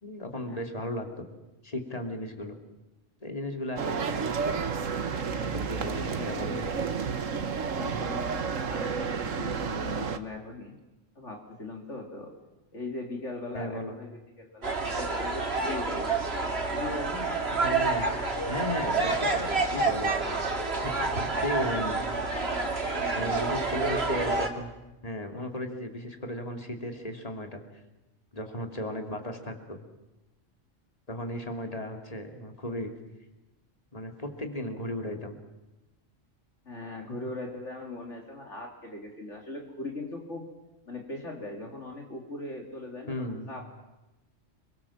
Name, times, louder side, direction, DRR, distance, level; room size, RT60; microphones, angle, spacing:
voice 1, 0.0-1.3 1.6-2.5 3.2-4.6 5.4-6.7 7.9-8.0 13.5-14.0 17.6-20.1 20.8-21.1 21.4-22.0 23.2-24.7 25.0-27.6 28.3-29.8 31.1-32.9 33.9-35.4 37.1-37.2 43.1-43.5, left 1 dB, 30° left, 4 dB, 3.0 m, -35 dB
sound 1, 3.8-10.2, right 5 dB, 80° right, 1.7 m, -31 dB
voice 2, 5.8-6.4 7.7-10.7 11.1-12.3 12.7-16.2 16.7-17.5 22.8-24.0 36.6-40.5 40.9-43.7, left 2 dB, 65° left, 1 dB, 3.2 m, -39 dB
sound 2, 14.6-24.5, right 3 dB, 50° right, 2.6 m, -28 dB
30.0 x 23.0 x 7.3 m, 1.0 s
omnidirectional pair, 1.3 m